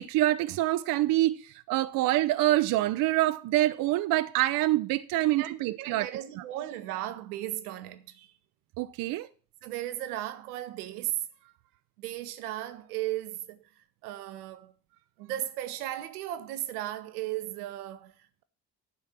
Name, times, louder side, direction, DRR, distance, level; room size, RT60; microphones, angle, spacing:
voice 1, 0.0-6.1 8.8-9.3, right 16 dB, 50° right, 0.5 m, -26 dB
voice 2, 5.4-8.3 9.6-11.5 12.0-14.7 15.2-18.4, right 13 dB, 75° right, 0.9 m, -36 dB
11.5 x 4.5 x 7.2 m
figure-of-eight pair, 45°, 46 cm